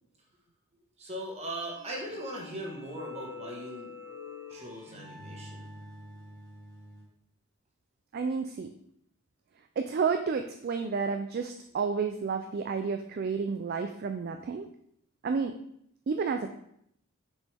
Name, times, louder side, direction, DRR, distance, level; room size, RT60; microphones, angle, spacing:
voice 1, 1.0-3.9 4.5-5.7, right 1 dB, 30° right, -1 dB, 1.4 m, -39 dB
sound 1, 1.7-7.0, left 3 dB, 20° left, 2.0 m, -46 dB
voice 2, 8.1-8.7 9.8-14.7 15.2-15.6 16.1-16.5, right 5 dB, 45° right, 6 dB, 0.3 m, -31 dB
6.2 x 5.3 x 3.4 m, 0.72 s
head